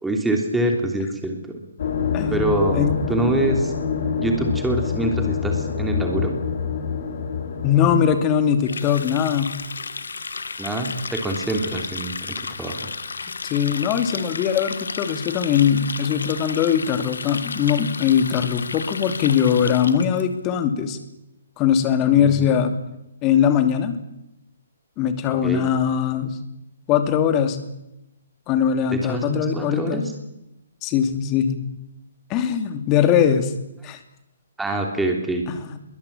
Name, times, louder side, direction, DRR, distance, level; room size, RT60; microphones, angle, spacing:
voice 1, 0.0-1.6 2.3-3.7 4.2-6.3 10.6-12.8 22.1-22.4 25.4-25.7 28.9-30.0 34.6-35.4, right 1 dB, 5° right, 2 dB, 3.2 m, -25 dB
sound 1, 1.8-8.0, left 6 dB, 50° left, 4.3 m, -26 dB
voice 2, 2.1-2.4 2.7-3.0 7.6-9.6 13.4-21.0 21.6-22.8 23.2-24.0 25.0-26.4 26.9-27.6 28.5-30.0 30.8-31.6 32.3-33.5 33.8-34.0 35.5-35.8, left 8 dB, 25° left, 8 dB, 2.7 m, -21 dB
Water tap faucet, 8.6-20.2, left 4 dB, 70° left, 1.6 m, -33 dB
22.0 x 19.5 x 7.4 m, 0.87 s
figure-of-eight pair, 130°, 0 cm